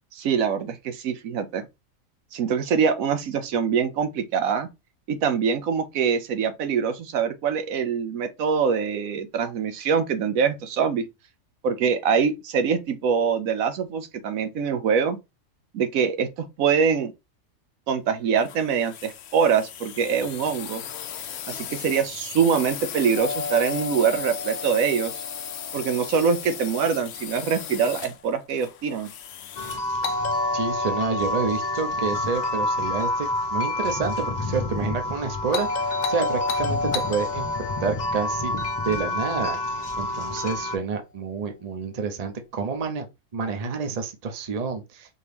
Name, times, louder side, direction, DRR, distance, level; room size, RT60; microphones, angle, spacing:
voice 1, 0.1-1.6 2.3-4.7 5.1-11.0 11.6-15.2 15.7-16.3 16.6-17.1 17.9-20.8 21.5-25.1 25.7-29.1, right 6 dB, 80° right, 1.1 m, -24 dB
sound 1, 18.4-29.9, left 9 dB, 65° left, 0.7 m, -37 dB
Doorbell, 23.2-27.2 30.0-34.2 35.5-39.9, left 3 dB, 80° left, 1.1 m, -33 dB
sound 2, 29.6-40.8, left 2 dB, 35° left, 1.0 m, -28 dB
voice 2, 30.5-37.5 37.8-38.5 38.9-39.6 40.0-43.1 43.3-45.2, right 5 dB, 35° right, 0.7 m, -29 dB
4.4 x 3.0 x 3.3 m
omnidirectional pair, 1.4 m